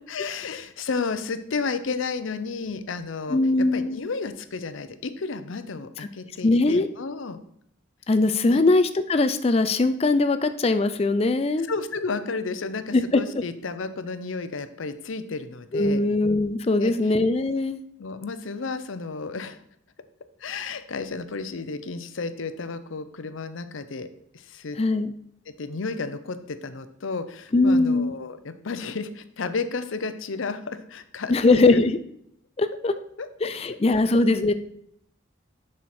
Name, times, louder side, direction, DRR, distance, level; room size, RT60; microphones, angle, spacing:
voice 1, 0.1-7.4 8.5-8.7 11.7-16.0 16.8-17.1 18.0-19.6 20.4-24.1 24.3-24.8 25.6-31.8 33.2-33.3 33.9-34.0, left 4 dB, 80° left, 11 dB, 0.6 m, -32 dB
voice 2, 3.3-4.0 6.4-6.9 8.1-11.7 12.9-13.2 15.7-17.8 24.8-25.1 27.5-28.2 31.3-32.0 32.6-32.9 33.4-34.5, left 2 dB, 30° left, 11 dB, 0.4 m, -21 dB
7.2 x 6.3 x 4.3 m, 0.71 s
head